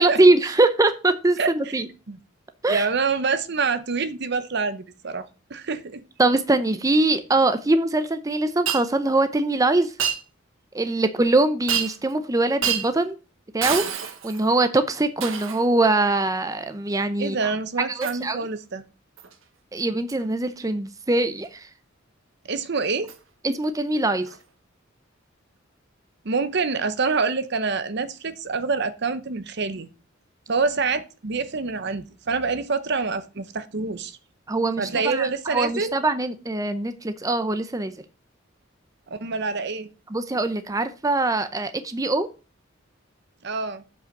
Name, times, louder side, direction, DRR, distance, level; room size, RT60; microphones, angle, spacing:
voice 1, 0.0-1.9 2.6-2.9 6.2-9.9 10.7-13.2 13.5-13.8 14.2-17.4 17.9-18.4 19.7-21.7 23.4-24.3 34.5-37.9 40.1-42.3, right 2 dB, 15° right, 0.6 m, -22 dB
voice 2, 1.4-1.8 2.1-2.2 2.7-6.0 17.2-18.8 22.5-23.1 26.2-29.9 30.5-34.2 34.8-36.0 39.1-39.9 43.4-43.8, right 4 dB, 55° right, 0.8 m, -26 dB
Shatter, 8.7-8.8 10.0-10.2 11.7-12.1 12.6-12.9 13.6-14.5 15.2-15.7 18.0-18.2 19.2-19.3 20.1-20.2 23.1-23.2 24.3-24.4, right 8 dB, 70° right, 1.1 m, -27 dB
7.6 x 5.7 x 6.5 m
head